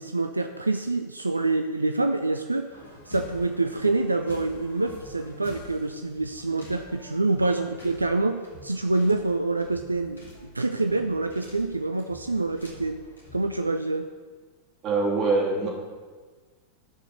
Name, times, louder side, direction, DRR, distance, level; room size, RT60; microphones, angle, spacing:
voice 1, 0.0-2.6 3.1-13.0 13.3-14.1, right 2 dB, 80° right, 7 dB, 0.4 m, -26 dB
sound 1, 2.7-13.5, equal, 75° left, 2.6 m, -47 dB
voice 2, 14.8-15.7, right 3 dB, 35° right, -3 dB, 3.1 m, -23 dB
13.0 x 5.2 x 6.5 m, 1.4 s
figure-of-eight pair, 90°, 0 cm